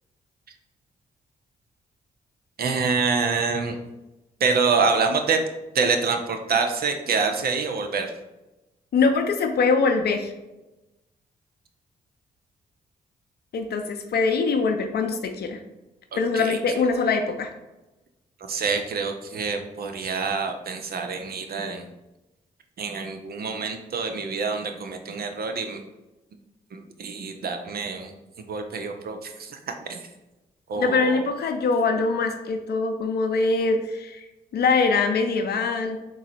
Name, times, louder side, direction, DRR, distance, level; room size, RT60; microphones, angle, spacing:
voice 1, 2.6-3.8 4.4-5.4 5.7-8.1 16.3-16.6 18.5-21.8 22.8-25.8 26.7-28.1 28.5-30.1 30.7-31.2, right 4 dB, 55° right, 5 dB, 0.6 m, -26 dB
voice 2, 8.9-10.3 13.5-15.6 16.2-17.5 30.8-34.3 34.5-36.0, left 4 dB, 60° left, 5 dB, 0.6 m, -23 dB
3.8 x 3.0 x 4.1 m, 1.0 s
hypercardioid pair, 45°, 19 cm